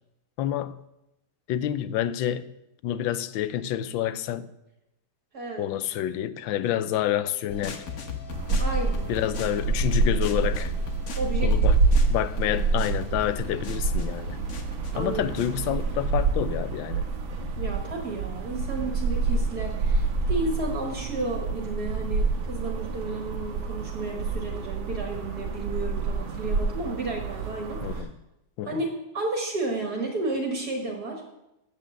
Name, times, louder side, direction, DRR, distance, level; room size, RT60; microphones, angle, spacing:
voice 1, 0.4-0.8 1.5-2.5 2.8-4.5 5.6-7.8 9.1-10.7 11.4-11.8 12.1-14.4 15.0-17.0 27.8-28.1 28.6-28.7, left 11 dB, 80° left, 1.3 m, -28 dB
voice 2, 5.3-5.7 8.6-9.1 11.2-11.5 14.9-15.4 17.6-28.1 28.7-28.9 29.1-31.3, right 2 dB, 55° right, 2.1 m, -32 dB
sound 1, 7.5-16.1, left 5 dB, 45° left, 1.1 m, -39 dB
sound 2, 8.3-28.0, right 3 dB, 85° right, 1.9 m, -27 dB
8.6 x 7.7 x 7.5 m
omnidirectional pair, 2.2 m